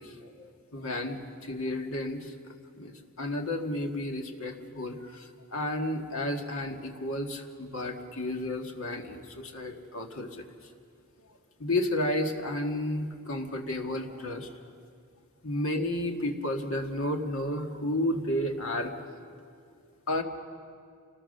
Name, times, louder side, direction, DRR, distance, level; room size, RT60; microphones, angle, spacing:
voice 1, 0.0-10.5 11.6-14.5 15.4-18.9 20.1-20.2, left 1 dB, 70° left, 3 dB, 1.8 m, -32 dB
28.0 x 19.0 x 6.7 m, 2.3 s
head